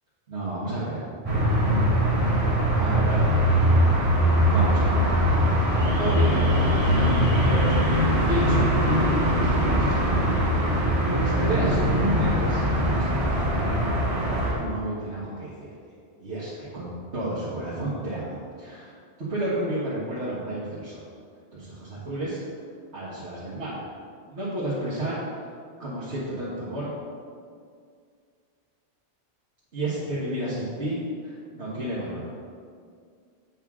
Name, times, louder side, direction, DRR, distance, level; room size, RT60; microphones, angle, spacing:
voice 1, 0.3-1.0 2.7-3.7 4.5-5.0 6.0-6.9 7.2-7.8 8.3-9.0 9.3-10.4 11.2-13.9 14.6-15.7 16.2-21.0 21.5-22.4 22.9-23.8 24.3-25.2 25.8-26.9 29.7-31.0 31.2-32.2, right 1 dB, 85° right, -10 dB, 1.7 m, -31 dB
sound 1, 1.2-14.5, equal, 30° right, 1.4 m, -21 dB
7.8 x 3.6 x 6.1 m, 2.2 s
omnidirectional pair, 1.1 m